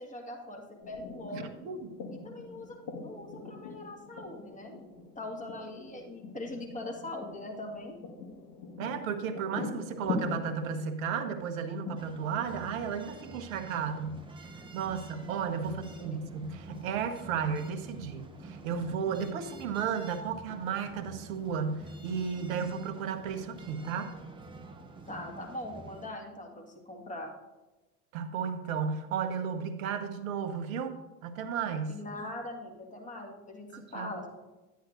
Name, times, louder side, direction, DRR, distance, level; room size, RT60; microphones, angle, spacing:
voice 1, 0.0-1.6 2.2-4.8 5.2-8.0 15.7-16.2 25.1-27.3 31.9-34.3, left 1 dB, 15° left, 1 dB, 1.8 m, -42 dB
sound 1, 0.8-13.9, left 4 dB, 45° left, 1.8 m, -42 dB
voice 2, 1.3-1.9 8.8-14.2 14.7-24.1 28.1-30.9 31.2-32.0 33.7-34.1, right 6 dB, 60° right, 8 dB, 1.0 m, -34 dB
sound 2, 12.0-26.1, right 3 dB, 10° right, 0.8 m, -47 dB
10.5 x 9.3 x 2.6 m, 1.1 s
figure-of-eight pair, 80°, 46 cm